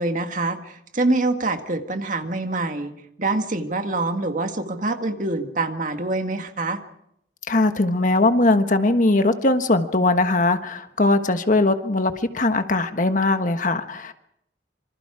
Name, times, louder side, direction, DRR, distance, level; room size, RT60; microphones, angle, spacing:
voice 1, 0.0-2.9 3.2-6.8, right 2 dB, 45° right, 6 dB, 1.9 m, -25 dB
voice 2, 7.5-14.1, left 2 dB, 45° left, 8 dB, 1.3 m, -20 dB
27.0 x 25.0 x 4.9 m, 0.76 s
head